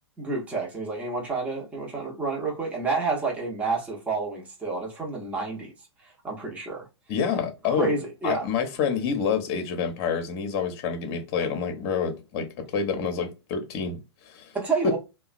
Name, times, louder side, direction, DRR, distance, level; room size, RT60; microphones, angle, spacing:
voice 1, 0.2-5.7 6.2-6.8 7.7-8.5 14.5-15.0, right 4 dB, 10° right, 0.9 m, -29 dB
voice 2, 7.1-7.9 8.2-14.5 14.8-14.9, left 6 dB, 40° left, 0.9 m, -28 dB
2.8 x 2.3 x 2.4 m
figure-of-eight pair, 110°, 14 cm